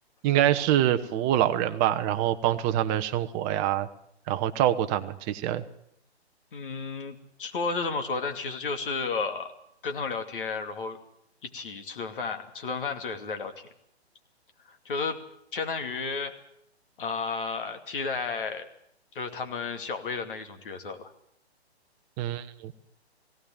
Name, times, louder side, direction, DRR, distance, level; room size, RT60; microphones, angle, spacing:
voice 1, 0.2-3.9 4.3-5.6 22.2-22.7, right 12 dB, 20° right, 10 dB, 1.0 m, -25 dB
voice 2, 6.5-9.5 9.8-11.0 11.4-13.7 14.6-15.2 15.5-16.3 17.0-18.7 19.1-21.1, left 4 dB, 55° left, 7 dB, 2.7 m, -32 dB
19.0 x 17.0 x 9.2 m, 0.73 s
figure-of-eight pair, 135°, 33 cm